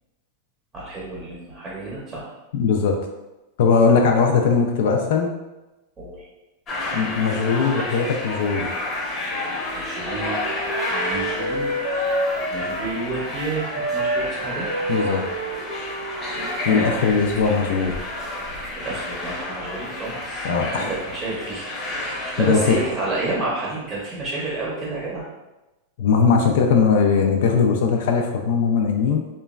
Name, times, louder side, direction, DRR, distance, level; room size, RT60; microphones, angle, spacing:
voice 1, 0.7-2.3 6.0-6.3 9.7-10.6 10.9-11.9 12.5-13.6 13.9-14.7 16.3-17.0 18.7-21.7 22.0-25.2, right 2 dB, 20° right, -6 dB, 0.6 m, -30 dB
voice 2, 2.5-2.9 3.6-5.3 6.9-8.7 14.9-15.2 16.7-18.0 20.4-20.9 22.0-22.8 26.0-29.2, left 5 dB, 70° left, 3 dB, 0.3 m, -19 dB
sound 1, 6.7-22.9, left 2 dB, 25° left, 0.7 m, -30 dB
Wind instrument woodwind instrument, 9.5-13.1 13.3-17.2, right 1 dB, 75° right, 0.7 m, -29 dB
2.9 x 2.2 x 2.3 m, 1.0 s
supercardioid pair, 145°, 0 cm